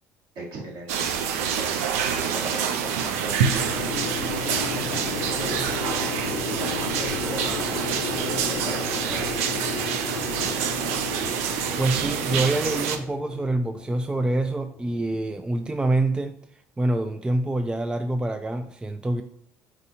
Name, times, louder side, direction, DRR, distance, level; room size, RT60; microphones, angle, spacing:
voice 1, 0.4-1.8 2.2-3.8 4.5-10.0, right 1 dB, 60° right, -2 dB, 1.9 m, -38 dB
sound 1, 0.9-13.0, right 7 dB, 85° right, 0.5 m, -27 dB
sound 2, 3.6-15.9, left 7 dB, 55° left, 0.6 m, -35 dB
voice 2, 11.8-16.3 16.8-19.2, right 2 dB, 10° right, 8 dB, 0.4 m, -26 dB
4.7 x 2.7 x 4.2 m, 0.64 s
hypercardioid pair, 70°, 7 cm